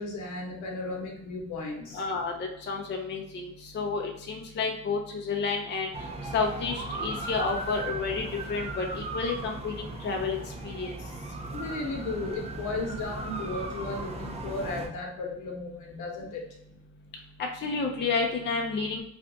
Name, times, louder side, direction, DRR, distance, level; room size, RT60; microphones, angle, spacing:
voice 1, 0.0-2.0 11.5-16.4, left 2 dB, 80° left, 0 dB, 0.9 m, -35 dB
voice 2, 1.9-5.9 6.3-10.4 10.6-11.0 17.4-19.0, left 4 dB, 35° left, 1 dB, 0.5 m, -30 dB
sound 1, 5.9-14.9, right 2 dB, 20° right, 0.5 m, -37 dB
2.5 x 2.2 x 3.8 m, 0.76 s
cardioid pair, 90°, 30 cm